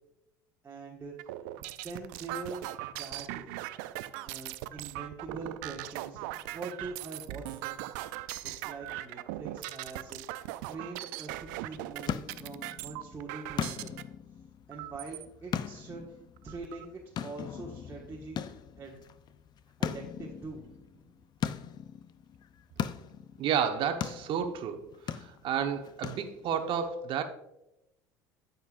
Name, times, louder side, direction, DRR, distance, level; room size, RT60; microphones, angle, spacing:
voice 1, 0.6-2.7 2.9-3.5 4.2-7.9 8.4-13.9 14.7-18.4 18.8-19.1 19.8-21.2 25.3-25.5, right 3 dB, 25° right, -4 dB, 1.6 m, -44 dB
sound 1, 1.2-14.0 14.7-15.2 15.8-15.9 16.2-16.8, right 15 dB, 75° right, 0.4 m, -40 dB
sound 2, 11.5-26.7, left 9 dB, 45° left, 0.5 m, -40 dB
voice 2, 23.4-24.8 25.1-27.2, right 8 dB, 55° right, 7 dB, 1.0 m, -31 dB
12.5 x 5.6 x 2.5 m, 0.88 s
hypercardioid pair, 80°, 10 cm